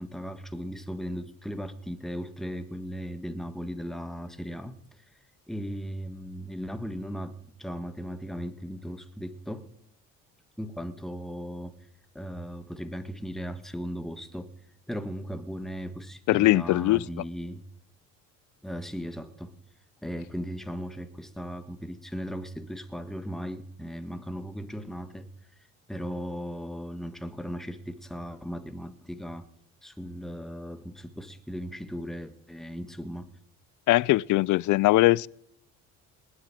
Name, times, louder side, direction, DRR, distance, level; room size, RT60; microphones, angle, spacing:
voice 1, 0.0-5.2 5.5-9.7 10.6-11.9 12.1-14.5 14.9-17.6 18.6-19.6 20.0-25.3 25.9-29.5 29.8-33.3, equal, ahead, 1.6 m, -37 dB
voice 2, 16.3-17.0 33.9-35.3, left 18 dB, 65° left, 0.5 m, -21 dB
19.5 x 7.8 x 9.0 m
supercardioid pair, 75°, 33 cm